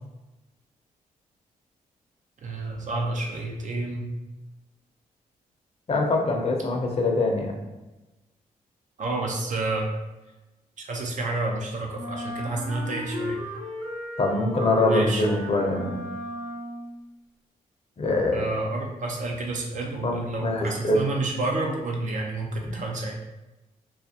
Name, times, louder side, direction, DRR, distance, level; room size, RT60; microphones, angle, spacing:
voice 1, 2.4-4.1 9.0-9.9 10.8-13.4 14.9-15.2 18.3-23.2, right 2 dB, 55° right, 0 dB, 0.6 m, -29 dB
voice 2, 5.9-7.5 14.2-16.0 18.0-18.5 20.0-21.0, left 2 dB, 40° left, 1 dB, 0.6 m, -24 dB
Wind instrument woodwind instrument, 11.9-17.0, left 1 dB, 90° right, 1.2 m, -34 dB
2.4 x 2.0 x 2.8 m, 1.0 s
supercardioid pair, 60°, 16 cm